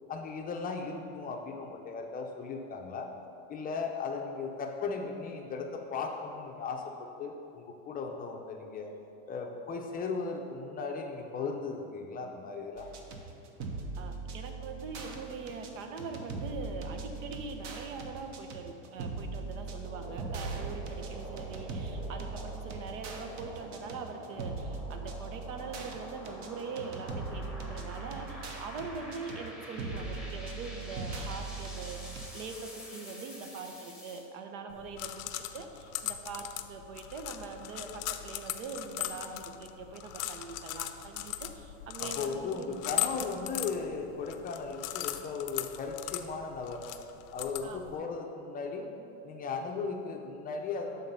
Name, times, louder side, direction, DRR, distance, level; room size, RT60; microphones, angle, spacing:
voice 1, 0.1-3.1 3.5-8.9 9.3-12.9 42.0-46.8 47.3-48.9 49.2-51.1, left 4 dB, 25° left, 2 dB, 0.5 m, -37 dB
sound 1, 12.8-32.3, right 4 dB, 45° right, 0.8 m, -40 dB
voice 2, 14.0-42.7 47.6-48.0, right 4 dB, 80° right, 5 dB, 0.9 m, -42 dB
sound 2, 19.7-34.2, left 1 dB, ahead, 1.0 m, -48 dB
sound 3, 34.7-48.0, left 14 dB, 90° left, 0.5 m, -39 dB
7.2 x 3.8 x 5.4 m, 2.8 s
supercardioid pair, 130°, 38 cm